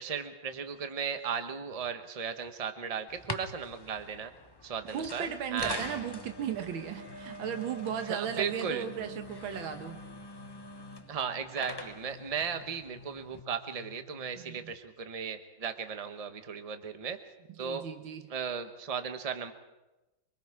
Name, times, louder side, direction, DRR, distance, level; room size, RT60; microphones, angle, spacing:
voice 1, 0.0-4.3 4.6-5.8 8.1-8.9 11.1-17.2 17.6-17.8 18.3-19.5, right 6 dB, 25° right, 8 dB, 0.9 m, -36 dB
sound 1, 3.1-13.4, left 2 dB, 25° left, 0.5 m, -44 dB
voice 2, 4.9-10.0 14.4-14.7 17.6-18.3, right 9 dB, 85° right, 7 dB, 2.0 m, -36 dB
sound 2, 7.1-14.6, left 5 dB, 60° left, 2.6 m, -55 dB
25.0 x 23.5 x 4.9 m, 1.0 s
omnidirectional pair, 2.1 m